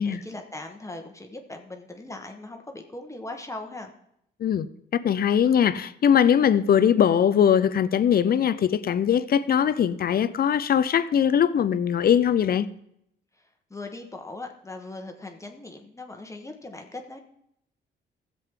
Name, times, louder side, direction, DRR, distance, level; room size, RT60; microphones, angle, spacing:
voice 1, 0.0-3.9 13.7-17.2, left 2 dB, 15° left, 1.3 m, -39 dB
voice 2, 4.4-12.7, left 8 dB, 50° left, 0.6 m, -21 dB
15.0 x 7.7 x 3.7 m
cardioid pair, 90°, 20 cm